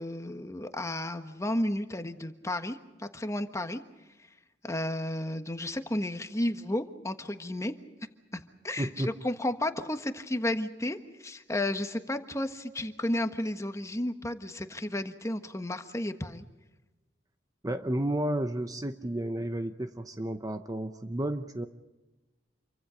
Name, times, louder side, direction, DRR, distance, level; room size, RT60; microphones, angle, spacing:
voice 1, 0.0-3.8 4.6-7.7 8.3-16.4, left 1 dB, 15° left, 8 dB, 1.3 m, -33 dB
voice 2, 8.8-9.1 17.6-21.7, right 1 dB, 20° right, 8 dB, 0.8 m, -32 dB
28.0 x 24.0 x 5.1 m, 1.1 s
head